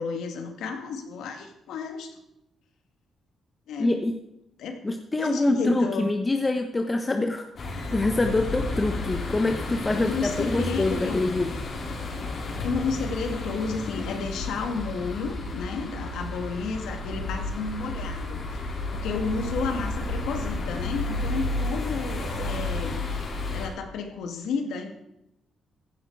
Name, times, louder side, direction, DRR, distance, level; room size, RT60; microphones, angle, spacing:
voice 1, 0.0-2.2 3.7-4.0 4.6-4.7 5.2-6.1 10.0-11.5 12.6-24.9, left 4 dB, 90° left, 5 dB, 2.2 m, -32 dB
voice 2, 3.8-4.2 4.8-11.5, left 2 dB, 20° left, 5 dB, 1.1 m, -25 dB
sound 1, 7.6-23.7, left 2 dB, 50° left, 3.9 m, -32 dB
15.5 x 11.0 x 4.8 m, 0.83 s
cardioid pair, 110°, 0 cm